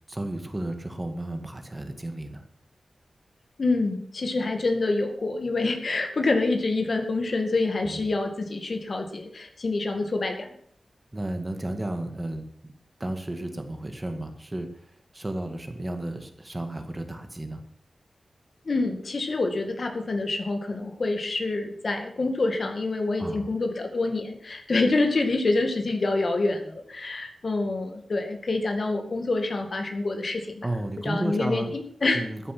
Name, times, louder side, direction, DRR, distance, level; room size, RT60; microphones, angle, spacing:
voice 1, 0.1-2.4 7.8-8.0 11.1-12.7 13.0-14.7 15.1-17.6 23.2-23.5 30.6-31.7 32.1-32.5, right 1 dB, 20° right, 6 dB, 1.9 m, -33 dB
voice 2, 3.6-10.5 18.7-30.7 31.0-32.2, left 3 dB, 50° left, 5 dB, 2.1 m, -27 dB
13.5 x 10.0 x 6.0 m, 0.66 s
wide cardioid pair, 115°, 0 cm